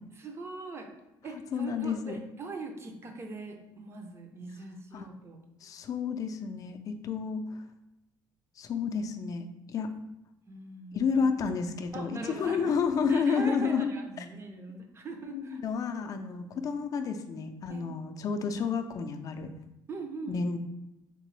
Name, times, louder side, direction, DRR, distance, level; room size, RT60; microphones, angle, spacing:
voice 1, 0.2-0.9 1.2-5.4 10.5-11.0 11.9-12.7 13.1-15.6 17.7-17.9 19.9-20.4, right 3 dB, 30° right, 4 dB, 0.6 m, -41 dB
voice 2, 1.5-2.2 4.9-5.1 5.6-7.6 8.6-9.9 10.9-13.9 14.2-14.3 15.3-19.5 20.3-20.6, left 5 dB, 45° left, 7 dB, 0.4 m, -30 dB
3.7 x 2.9 x 3.2 m, 0.91 s
cardioid pair, 115°, 8 cm